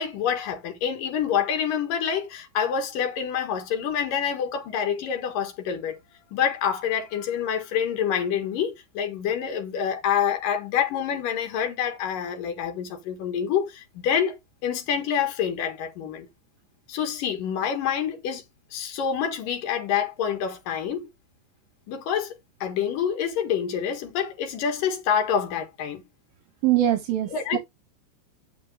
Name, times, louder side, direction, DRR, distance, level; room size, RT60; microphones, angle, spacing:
voice 1, 0.0-6.0 6.3-16.3 16.9-18.4 18.7-21.1 21.9-26.0 27.3-27.6, left 8 dB, 60° left, 3.1 m, -27 dB
voice 2, 26.6-27.6, right 12 dB, 70° right, 2.5 m, -23 dB
9.4 x 6.3 x 3.4 m
omnidirectional pair, 4.9 m